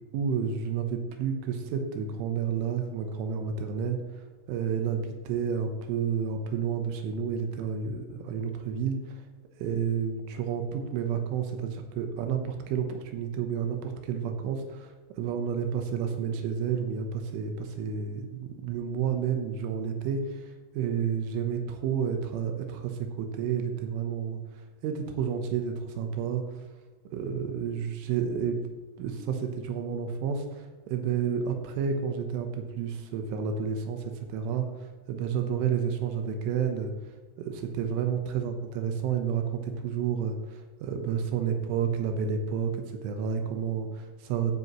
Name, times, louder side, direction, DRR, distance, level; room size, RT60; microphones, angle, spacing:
voice 1, 0.1-9.2 9.6-14.9 15.2-26.4 27.1-28.6 29.0-36.9 37.4-44.5, right 7 dB, 80° right, 5 dB, 3.3 m, -30 dB
15.0 x 8.2 x 3.0 m, 1.3 s
omnidirectional pair, 5.9 m